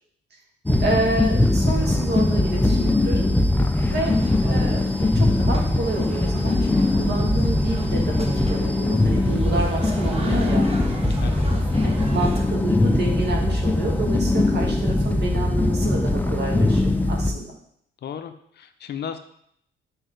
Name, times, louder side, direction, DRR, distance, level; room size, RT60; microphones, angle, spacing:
sound 1, 0.7-17.3, left 2 dB, 10° left, 0.5 m, -21 dB
voice 1, 0.8-3.3 3.9-10.7 11.8-16.8 17.1-17.5, right 2 dB, 55° right, 0 dB, 1.6 m, -29 dB
sound 2, 3.8-12.4, right 2 dB, 30° right, 1.1 m, -40 dB
voice 2, 4.0-4.3 11.2-11.5 18.0-19.2, left 8 dB, 55° left, 9 dB, 0.6 m, -35 dB
4.5 x 4.0 x 5.1 m, 0.68 s
cardioid pair, 90°, 20 cm